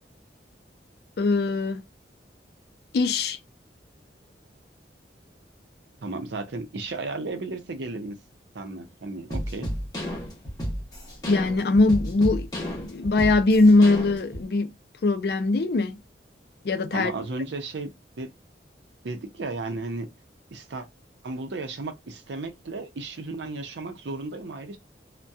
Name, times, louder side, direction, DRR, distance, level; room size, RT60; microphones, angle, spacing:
voice 1, 1.2-1.8 2.9-3.4 11.3-14.7 15.0-16.0 16.7-17.1, left 2 dB, 60° left, 0.4 m, -21 dB
voice 2, 6.0-8.2 8.5-9.7 16.9-18.3 19.0-20.1 20.5-20.9 21.2-24.8, right 3 dB, 80° right, 0.6 m, -34 dB
sound 1, 9.3-14.4, equal, 20° left, 0.9 m, -32 dB
2.7 x 2.1 x 2.2 m
head